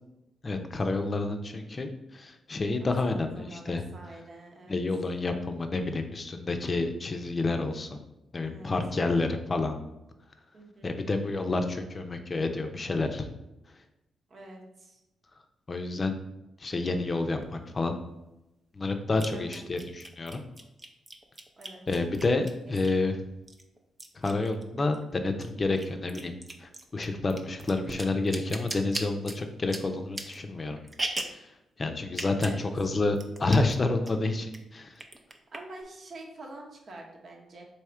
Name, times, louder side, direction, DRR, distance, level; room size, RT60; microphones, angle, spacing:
voice 1, 0.4-3.8 4.7-8.0 8.3-9.7 10.8-13.3 15.7-16.1 16.6-18.0 18.7-20.4 21.9-23.2 24.2-26.3 26.6-30.8 31.8-34.9, left 3 dB, 40° left, 6 dB, 0.6 m, -29 dB
voice 2, 2.8-4.8 8.4-8.7 10.5-10.9 14.3-15.0 19.3-19.6 21.6-21.8 22.9-23.0 32.4-32.6 35.5-37.7, right 2 dB, 55° right, 0 dB, 1.0 m, -46 dB
sound 1, 17.4-17.5 19.2-23.1 23.5-25.0 25.3-31.5 32.1-32.6 32.9-33.0 33.2-33.8 34.1-34.6 34.9-35.8, right 2 dB, 25° right, 0.6 m, -38 dB
3.6 x 2.7 x 4.4 m, 0.93 s
supercardioid pair, 50°, 0 cm